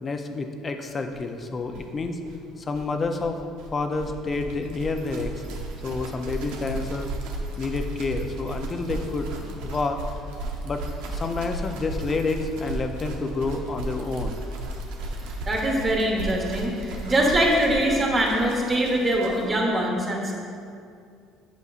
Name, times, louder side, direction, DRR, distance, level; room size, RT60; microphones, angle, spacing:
voice 1, 0.0-2.2 2.6-3.4 3.7-5.4 5.8-7.1 7.6-10.0 10.6-10.8 11.1-14.4, left 3 dB, 30° left, 6 dB, 0.5 m, -29 dB
sound 1, 1.1-1.2 1.4-1.5 1.7-19.5, right 2 dB, 85° right, 0.7 m, -35 dB
voice 2, 15.5-20.3, right 1 dB, 30° right, -1 dB, 1.1 m, -23 dB
8.2 x 5.1 x 2.5 m, 2.4 s
cardioid pair, 105°, 0 cm